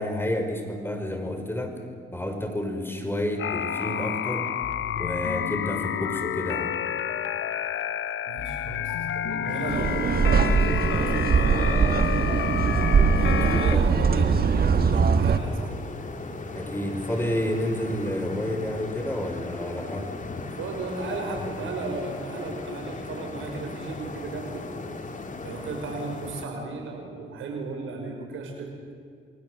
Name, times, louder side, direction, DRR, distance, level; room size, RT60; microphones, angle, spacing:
voice 1, 0.0-1.8 2.1-4.5 5.0-6.7 13.3-14.0 16.5-20.1, left 1 dB, 10° left, 5 dB, 5.3 m, -30 dB
sound 1, 3.4-13.8, left 9 dB, 75° left, 1.4 m, -29 dB
voice 2, 8.3-12.4 13.1-15.7 20.5-24.7 25.4-28.7, right 3 dB, 80° right, 3 dB, 6.1 m, -35 dB
sound 2, 9.5-26.5, left 3 dB, 40° left, 3.2 m, -38 dB
sound 3, 9.7-15.4, right 5 dB, 50° right, 1.5 m, -21 dB
29.0 x 23.0 x 8.0 m, 2.2 s
cardioid pair, 70°, 20 cm